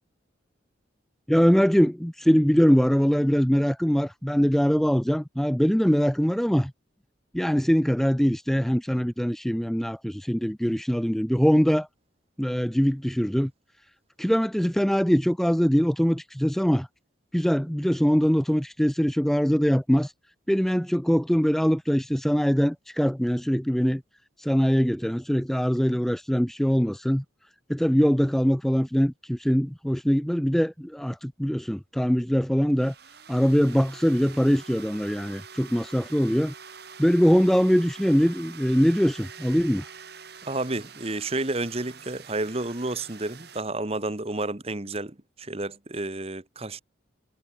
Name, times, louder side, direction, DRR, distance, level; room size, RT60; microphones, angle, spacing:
voice 1, 1.3-6.7 7.3-11.9 12.4-13.5 14.2-16.9 17.3-20.1 20.5-24.0 24.4-27.2 27.7-32.9 33.3-36.5 37.0-39.8, equal, ahead, 0.4 m, -22 dB
sound 1, 32.7-43.6, right 6 dB, 55° right, 4.6 m, -46 dB
voice 2, 40.4-46.8, right 2 dB, 30° right, 1.3 m, -31 dB
head